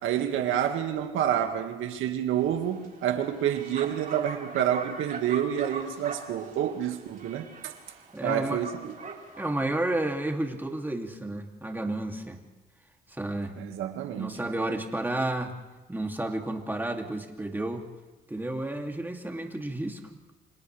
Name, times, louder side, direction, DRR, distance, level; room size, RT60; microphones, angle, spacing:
voice 1, 0.0-7.8 8.2-8.9 13.6-14.4, right 10 dB, 85° right, 2.0 m, -28 dB
Bark, 2.4-9.5, right 4 dB, 40° right, 4.6 m, -42 dB
voice 2, 8.1-8.6 9.4-12.4 13.1-13.6 14.2-15.5 15.9-17.8 18.3-20.0, right 1 dB, 10° right, 2.7 m, -31 dB
30.0 x 25.5 x 3.4 m
cardioid pair, 90°, 20 cm